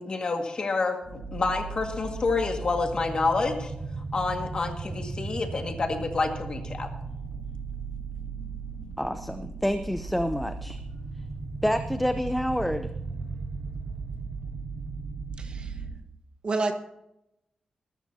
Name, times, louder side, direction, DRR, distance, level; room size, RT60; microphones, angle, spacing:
voice 1, 0.0-3.7 4.1-6.9, left 3 dB, 40° left, 4 dB, 1.8 m, -28 dB
sound 1, 1.0-15.9, right 4 dB, 60° right, 4.7 m, -36 dB
voice 2, 9.0-10.8 11.6-12.9, equal, 5° left, 8 dB, 0.6 m, -28 dB
voice 3, 15.4-15.8 16.4-16.7, right 3 dB, 40° right, 5 dB, 1.3 m, -29 dB
20.5 x 13.5 x 2.8 m, 0.87 s
wide cardioid pair, 165°, 2 cm